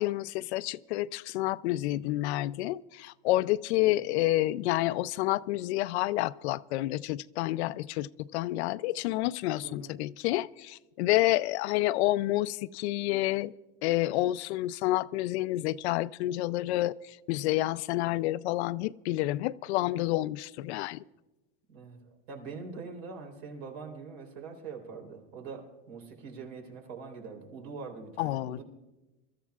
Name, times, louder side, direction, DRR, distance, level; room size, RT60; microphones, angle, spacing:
voice 1, 0.0-13.5 13.8-21.0 28.2-28.6, left 16 dB, 85° left, 0.5 m, -29 dB
voice 2, 9.6-9.9 21.7-28.6, right 5 dB, 70° right, 3.8 m, -43 dB
27.0 x 13.5 x 2.4 m
supercardioid pair, 140°, 32 cm